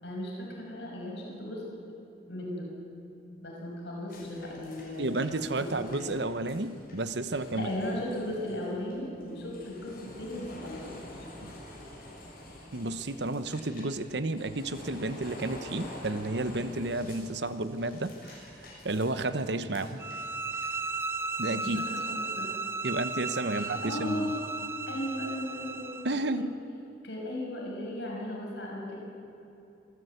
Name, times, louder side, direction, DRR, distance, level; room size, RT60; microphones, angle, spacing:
voice 1, 0.0-1.6 2.3-2.7 3.4-5.8 7.3-11.3 21.5-22.6 23.5-26.0 26.3-26.4 27.0-29.0, left 1 dB, 70° left, -3 dB, 5.9 m, -36 dB
sound 1, 4.1-21.0, left 1 dB, 50° left, 6.6 m, -48 dB
voice 2, 5.0-7.7 11.4-11.5 12.7-18.4 18.8-20.0 21.4-21.9 22.8-24.3 26.0-26.6, right 2 dB, 65° right, 12 dB, 0.9 m, -31 dB
sound 2, 20.0-26.1, right 3 dB, 15° right, 0.5 m, -35 dB
26.0 x 14.0 x 8.1 m, 2.8 s
head